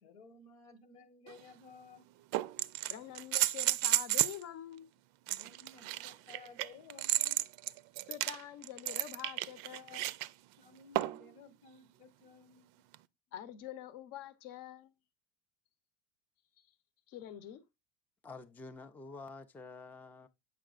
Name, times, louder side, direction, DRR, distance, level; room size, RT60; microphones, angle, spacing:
voice 1, 0.0-2.0 5.3-7.4 10.6-12.8, left 4 dB, 90° left, 1.3 m, -56 dB
sound 1, 1.3-1.4 2.3-4.4 5.3-10.3 10.9-11.3 12.9-13.0, right 17 dB, 55° right, 0.4 m, -33 dB
voice 2, 2.9-4.9 8.1-10.1 13.3-14.9 17.1-17.6, left 11 dB, 55° left, 0.8 m, -46 dB
voice 3, 18.2-20.3, left 3 dB, 5° left, 0.4 m, -48 dB
7.6 x 5.9 x 2.4 m
supercardioid pair, 115°, 30 cm